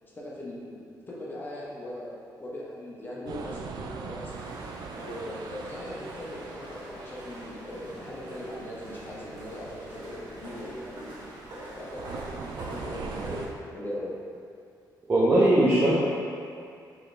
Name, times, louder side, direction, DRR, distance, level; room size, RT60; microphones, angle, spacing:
voice 1, 0.0-2.1 2.4-4.3 4.9-11.2 11.8-14.1, left 1 dB, 25° left, -6 dB, 1.0 m, -39 dB
sound 1, 3.3-13.5, right 5 dB, 65° right, 0.3 m, -42 dB
sound 2, 4.3-13.5, right 1 dB, 80° right, 1.2 m, -45 dB
voice 2, 15.1-15.9, right 1 dB, 30° right, -8 dB, 0.7 m, -20 dB
4.7 x 2.9 x 3.3 m, 2.4 s
cardioid pair, 110°, 8 cm